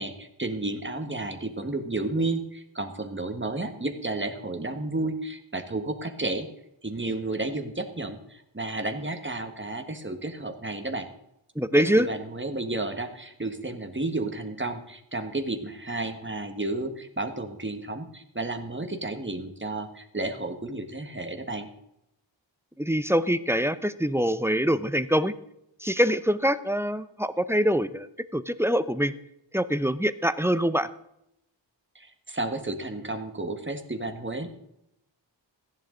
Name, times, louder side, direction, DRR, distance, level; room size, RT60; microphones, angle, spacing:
voice 1, 0.0-6.5 6.8-11.1 11.8-21.7 31.9-34.5, right 2 dB, 25° right, 6 dB, 1.5 m, -32 dB
voice 2, 11.6-12.1 22.8-25.3 25.8-28.1 28.3-29.1 29.5-30.9, equal, 5° right, 13 dB, 0.6 m, -24 dB
15.0 x 10.5 x 3.9 m, 0.80 s
wide cardioid pair, 60°, 46 cm